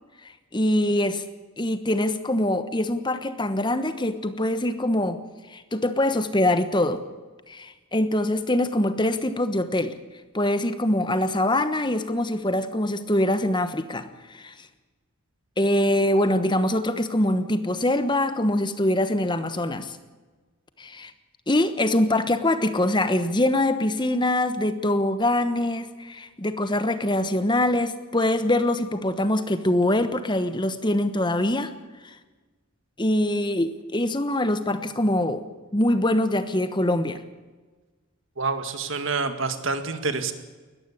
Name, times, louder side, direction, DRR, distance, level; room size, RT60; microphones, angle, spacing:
voice 1, 0.5-1.2 1.6-5.2 5.5-7.0 7.5-9.9 10.3-14.0 14.3-14.5 15.6-20.0 20.8-21.1 21.5-31.7 32.0-32.2 33.0-35.4 35.7-37.2, left 1 dB, 20° left, 11 dB, 1.1 m, -23 dB
voice 2, 38.4-40.3, right 4 dB, 65° right, 9 dB, 2.0 m, -27 dB
20.0 x 14.5 x 10.0 m, 1.3 s
head